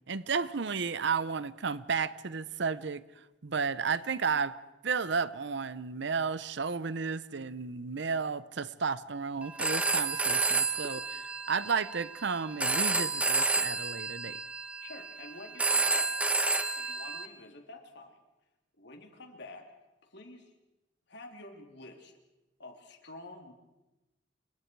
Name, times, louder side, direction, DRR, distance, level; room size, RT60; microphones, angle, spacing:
voice 1, 0.1-3.0 3.4-4.5 4.8-14.4, right 5 dB, 70° right, 0.8 m, -33 dB
Telephone, 9.4-17.3, right 3 dB, 5° right, 1.2 m, -30 dB
voice 2, 14.8-16.2 16.8-18.2 18.8-19.7 20.1-20.5 21.1-22.1 22.6-23.5, left 2 dB, 65° left, 3.5 m, -48 dB
28.0 x 25.0 x 4.7 m
head